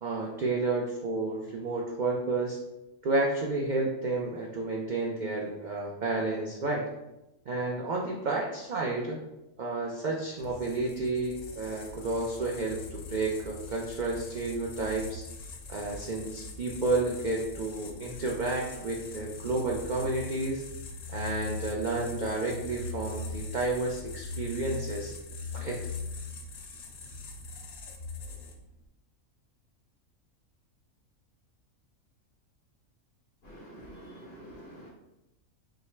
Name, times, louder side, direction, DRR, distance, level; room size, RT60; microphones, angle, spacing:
voice 1, 0.0-2.6 3.0-6.8 7.5-9.2 9.6-15.2 15.7-20.6 21.1-25.1 25.5-25.8, right 2 dB, 70° right, -2 dB, 0.4 m, -31 dB
sound 1, 10.4-28.7, left 3 dB, 60° left, 0.7 m, -41 dB
voice 2, 33.4-34.9, right 1 dB, 45° left, -5 dB, 1.5 m, -47 dB
5.9 x 2.1 x 3.2 m, 0.94 s
omnidirectional pair, 1.4 m